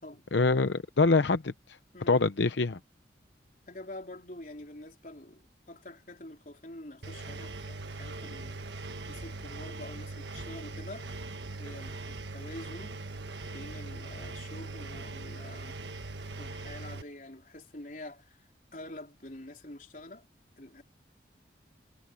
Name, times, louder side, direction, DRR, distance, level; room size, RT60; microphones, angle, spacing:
voice 1, 0.3-1.5 2.1-2.8, left 3 dB, 80° left, 0.7 m, -24 dB
voice 2, 3.7-8.6 9.1-11.1 11.6-13.0 13.5-15.8 16.4-20.3 20.6-20.8, left 1 dB, 45° left, 4.0 m, -46 dB
Engine, 7.0-17.0, right 2 dB, 75° right, 1.4 m, -41 dB
head